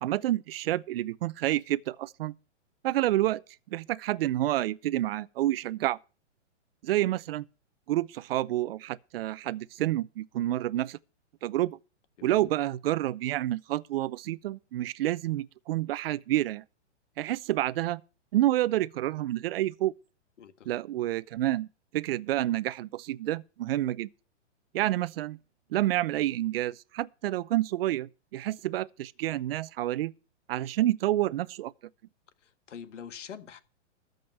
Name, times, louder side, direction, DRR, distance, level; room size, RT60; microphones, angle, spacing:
voice 1, 0.0-2.3 2.8-3.4 3.7-6.0 6.8-7.4 7.9-11.0 11.4-11.8 12.2-16.6 17.2-18.0 18.3-19.9 20.7-21.7 21.9-24.1 24.7-25.4 25.7-30.1 30.5-31.7, right 14 dB, 55° right, 0.7 m, -29 dB
voice 2, 12.2-12.5 20.4-20.7 32.4-33.6, left 8 dB, 75° left, 1.6 m, -45 dB
13.5 x 5.3 x 7.7 m
hypercardioid pair, 140°, 36 cm